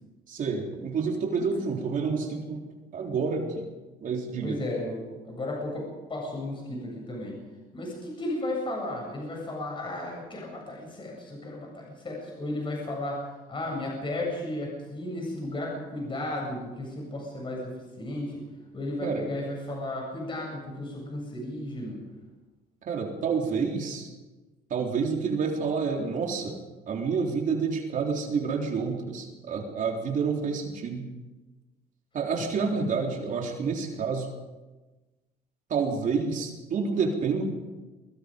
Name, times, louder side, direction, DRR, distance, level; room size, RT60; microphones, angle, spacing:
voice 1, 0.3-2.6 2.9-3.7 4.0-4.6 19.0-19.3 22.9-24.1 24.7-31.1 32.1-34.3 35.7-37.5, right 5 dB, 50° right, 1 dB, 3.7 m, -29 dB
voice 2, 4.4-7.4 7.7-18.4 18.7-22.0, left 1 dB, 30° left, -1 dB, 7.9 m, -34 dB
23.5 x 22.5 x 5.3 m, 1.2 s
cardioid pair, 110°, 17 cm